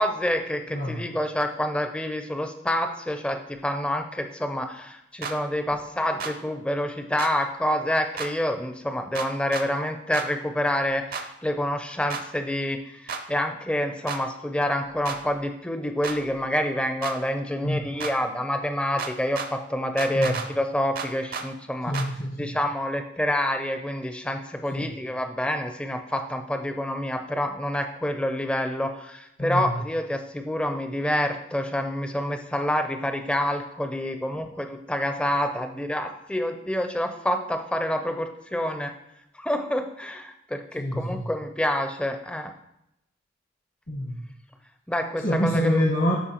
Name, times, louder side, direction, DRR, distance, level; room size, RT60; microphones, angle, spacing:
voice 1, 0.0-21.9 22.4-38.9 39.4-42.5 44.9-45.7, left 1 dB, 5° left, 5 dB, 0.5 m, -27 dB
sound 1, 5.2-5.4 6.2-6.3 7.2-7.3 8.2-8.3 9.2-9.7 10.1-10.3 11.1-11.3 12.1-12.2 13.1-13.2 14.1-14.2 15.1-15.2 16.0-16.2 17.0-17.2 18.0-18.1 19.0-19.5 20.0-20.5 21.0-21.5 21.9-22.1, right 5 dB, 45° right, 0.6 m, -32 dB
voice 2, 21.8-22.6 24.7-24.9 29.4-29.8 34.3-34.4 40.8-41.2 43.9-44.3 45.2-46.1, equal, 60° left, -4 dB, 1.2 m, -26 dB
12.0 x 4.3 x 2.9 m, 0.83 s
head